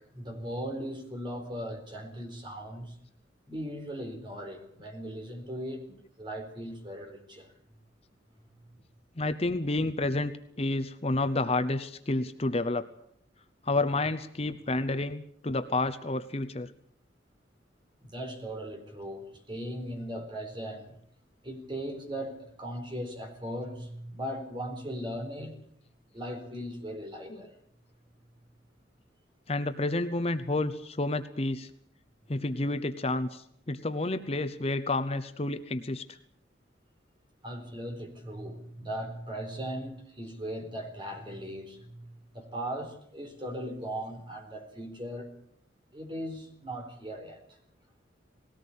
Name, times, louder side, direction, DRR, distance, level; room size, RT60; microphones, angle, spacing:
voice 1, 0.0-2.9 3.5-5.9 6.2-7.5 18.0-21.0 21.4-25.6 26.1-27.5 37.4-42.1 42.3-45.3 45.9-47.6, equal, 25° right, 4 dB, 4.2 m, -38 dB
voice 2, 9.2-10.3 10.6-12.9 13.6-16.7 29.5-31.7 32.3-36.2, left 2 dB, 30° left, 10 dB, 0.8 m, -30 dB
20.0 x 18.0 x 8.4 m, 0.68 s
head